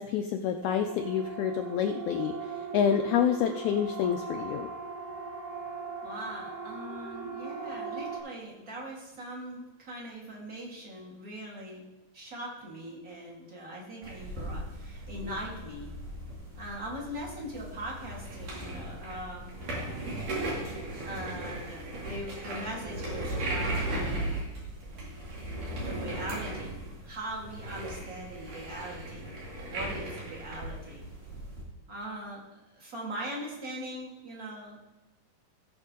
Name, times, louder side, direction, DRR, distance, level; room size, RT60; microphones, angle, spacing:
voice 1, 0.0-2.3 2.7-4.7, left 8 dB, 90° left, 6 dB, 1.6 m, -28 dB
Siren, 0.6-8.2, right 5 dB, 85° right, 4.7 m, -39 dB
voice 2, 6.0-11.8 12.1-15.9 16.6-19.5 21.0-24.4 25.8-29.3 29.7-31.1 31.9-32.4 32.8-34.8, right 1 dB, 30° right, -2 dB, 2.1 m, -41 dB
sound 1, 14.0-31.6, right 1 dB, 65° right, 4.2 m, -37 dB
17.0 x 6.3 x 3.8 m, 1.1 s
omnidirectional pair, 4.0 m